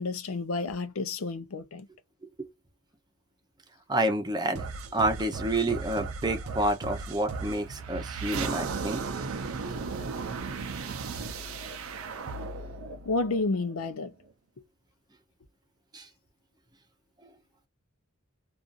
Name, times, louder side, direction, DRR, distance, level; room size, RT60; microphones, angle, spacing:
voice 1, 0.0-1.9 13.0-14.1, left 3 dB, 85° left, 0.5 m, -30 dB
voice 2, 3.9-4.6 4.9-9.0 15.9-16.1, right 1 dB, 20° right, 0.6 m, -29 dB
sound 1, 4.5-13.9, right 4 dB, 85° right, 0.6 m, -36 dB
2.5 x 2.4 x 2.5 m
head